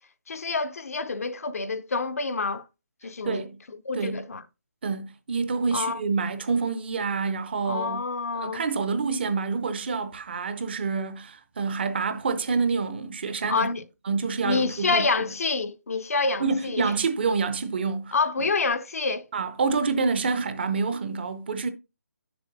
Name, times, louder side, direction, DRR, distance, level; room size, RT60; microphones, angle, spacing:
voice 1, 0.3-2.6 3.0-3.5 3.8-4.4 5.7-6.0 7.7-8.7 13.5-13.8 14.4-16.9 18.1-19.3, left 4 dB, 60° left, 0.6 m, -27 dB
voice 2, 3.2-3.6 3.9-4.2 4.8-8.0 8.4-13.7 14.1-15.0 16.4-18.1 19.3-21.7, right 4 dB, 40° right, 0.7 m, -27 dB
8.2 x 6.9 x 2.6 m
figure-of-eight pair, 160°, 9 cm